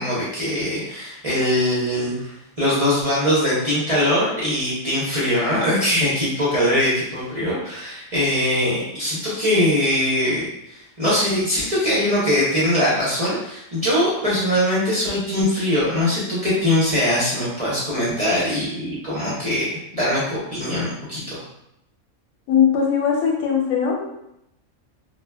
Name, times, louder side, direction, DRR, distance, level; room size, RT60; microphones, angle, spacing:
voice 1, 0.0-19.7 19.9-21.4, left 1 dB, 35° right, -8 dB, 0.6 m, -22 dB
voice 2, 22.5-24.1, left 7 dB, 85° left, 0 dB, 1.1 m, -20 dB
2.2 x 2.2 x 3.3 m, 0.81 s
omnidirectional pair, 1.5 m